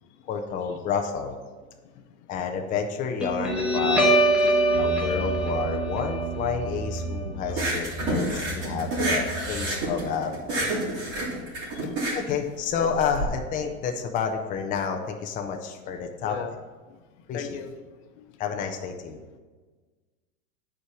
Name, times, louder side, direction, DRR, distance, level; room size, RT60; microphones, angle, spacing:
voice 1, 0.3-1.4 2.3-4.2 4.8-10.7 12.1-16.4 17.3-17.5 18.4-19.2, left 6 dB, 20° left, 3 dB, 0.6 m, -30 dB
Guitar, 3.2-10.2, right 1 dB, ahead, 1.2 m, -25 dB
voice 2, 4.8-5.3 7.5-7.7 8.1-8.2 11.8-11.9 16.2-16.6 17.3-17.8 18.2-18.3, left 8 dB, 60° left, 7 dB, 0.9 m, -38 dB
sound 1, 7.5-13.2, right 1 dB, 40° right, 3.1 m, -28 dB
8.5 x 4.9 x 6.0 m, 1.4 s
supercardioid pair, 150°, 39 cm